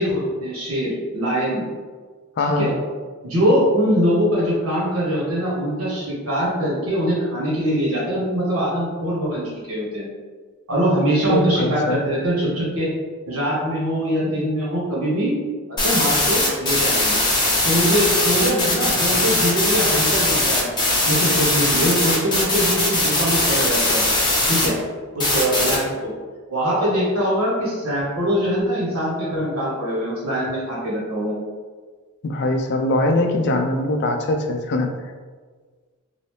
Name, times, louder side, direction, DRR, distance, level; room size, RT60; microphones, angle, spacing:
voice 1, 0.0-1.6 2.6-2.7 3.2-10.1 10.7-12.9 13.3-15.3 15.8-17.2 17.6-20.7 21.0-24.0 24.5-24.8 25.1-26.1 26.5-31.4, equal, 80° right, -7 dB, 1.5 m, -22 dB
voice 2, 2.4-2.7 11.3-12.0 32.2-34.9, left 2 dB, 50° left, 3 dB, 0.4 m, -21 dB
sound 1, 15.8-24.7 25.2-25.8, left 2 dB, 20° left, 0.7 m, -20 dB
2.8 x 2.7 x 3.2 m, 1.5 s
head